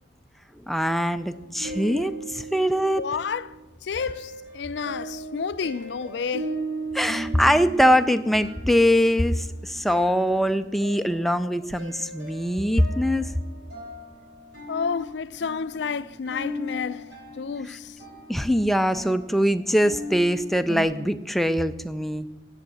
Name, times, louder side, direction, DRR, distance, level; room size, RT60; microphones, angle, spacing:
voice 1, 0.7-3.0 6.9-13.3 17.7-17.8 18.3-22.3, equal, ahead, 0.4 m, -22 dB
sound 1, 1.0-3.6 4.0-20.8, right 1 dB, 60° right, 4.4 m, -38 dB
voice 2, 3.0-6.5 14.7-18.0, left 5 dB, 60° left, 0.4 m, -31 dB
9.9 x 8.6 x 7.5 m
head